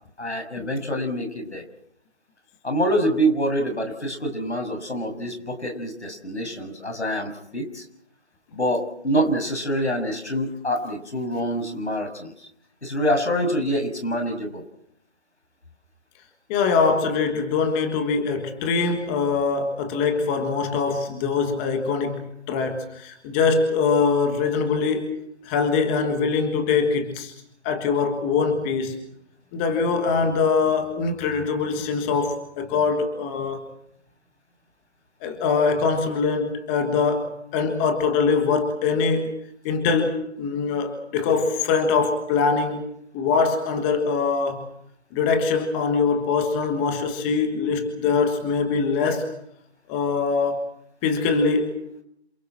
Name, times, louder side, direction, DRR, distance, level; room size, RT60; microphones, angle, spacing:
voice 1, 0.2-1.6 2.6-7.8 8.5-12.5 12.8-14.6, equal, 80° left, 5 dB, 6.8 m, -26 dB
voice 2, 16.5-25.1 25.4-27.3 27.6-28.9 29.5-33.6 35.2-39.3 39.6-42.9 43.1-44.7 45.1-49.3 49.9-50.7 51.0-51.7, left 5 dB, 10° left, 5 dB, 1.5 m, -23 dB
29.0 x 27.5 x 4.4 m, 0.71 s
figure-of-eight pair, 155°, 33 cm